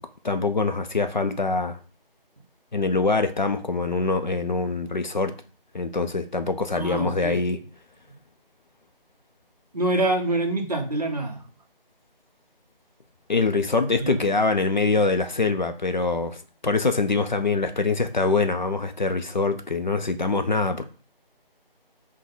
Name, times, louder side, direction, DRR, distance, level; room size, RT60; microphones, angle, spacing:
voice 1, 0.2-1.8 2.7-5.3 5.7-7.6 13.3-20.8, left 3 dB, 50° left, 0.5 m, -24 dB
voice 2, 6.7-7.5 9.7-11.5 14.0-14.3, right 2 dB, 45° right, 0.7 m, -26 dB
5.9 x 2.1 x 3.9 m
figure-of-eight pair, 170°, 29 cm